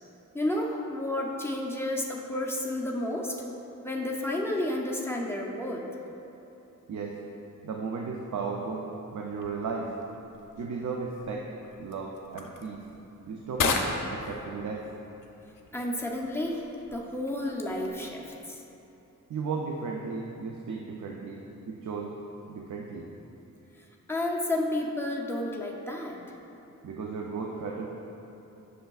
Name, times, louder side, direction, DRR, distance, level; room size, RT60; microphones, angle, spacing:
voice 1, 0.3-3.4 3.8-5.9 15.7-16.6 16.9-18.6 24.1-26.2, left 1 dB, 5° left, -2 dB, 0.5 m, -31 dB
voice 2, 6.9-7.2 7.6-9.9 10.6-11.5 11.8-12.8 13.3-13.8 14.1-14.9 19.3-22.2 22.5-23.1 26.8-27.9, right 4 dB, 60° right, 0 dB, 0.5 m, -35 dB
sound 1, 9.3-18.4, left 4 dB, 70° left, 0.5 m, -37 dB
7.9 x 6.3 x 2.3 m, 2.9 s
wide cardioid pair, 175°, 33 cm